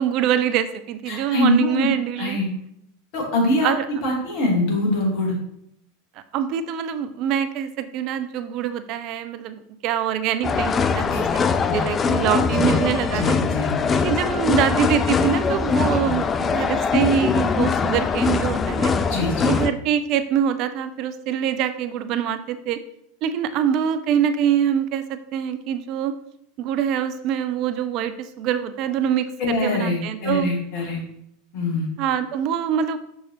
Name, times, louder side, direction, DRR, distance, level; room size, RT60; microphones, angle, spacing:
voice 1, 0.0-2.4 3.6-3.9 6.3-13.4 14.0-18.9 19.4-22.8 23.2-26.1 26.6-30.5 32.0-33.0, right 9 dB, 40° right, 11 dB, 0.4 m, -24 dB
voice 2, 1.1-1.9 2.2-2.5 3.1-3.7 4.0-5.4 11.1-11.2 11.7-11.8 12.5-12.7 13.1-14.0 19.1-19.5 29.4-31.0 31.5-31.9, left 2 dB, 45° left, -1 dB, 1.8 m, -23 dB
sound 1, 10.4-19.7, left 5 dB, 20° left, 0.3 m, -22 dB
6.1 x 5.4 x 3.0 m, 0.75 s
figure-of-eight pair, 85°, 0 cm